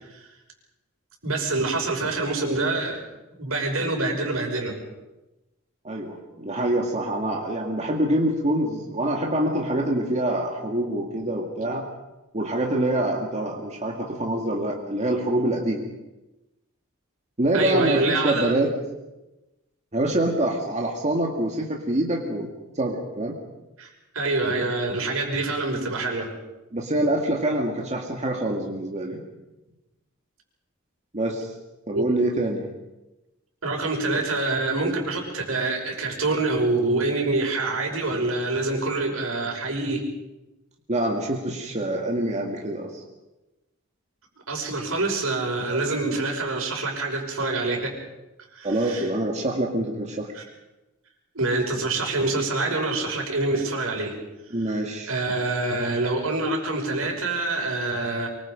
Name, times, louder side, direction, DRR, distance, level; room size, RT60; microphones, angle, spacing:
voice 1, 1.2-3.0 3.4-4.8 17.5-18.5 23.8-23.9 24.1-26.3 31.9-32.1 33.6-40.0 44.5-47.9 48.5-49.1 50.3-50.4 51.3-54.1 55.1-58.3, right 2 dB, 80° right, 1 dB, 5.9 m, -26 dB
voice 2, 5.8-11.9 12.3-15.8 17.4-18.7 19.9-22.5 22.8-23.4 26.7-29.2 31.1-31.5 31.9-32.7 40.9-43.0 45.7-45.8 48.6-50.3 54.5-55.1, right 1 dB, 35° right, 0 dB, 2.1 m, -25 dB
24.0 x 24.0 x 5.2 m, 1.0 s
head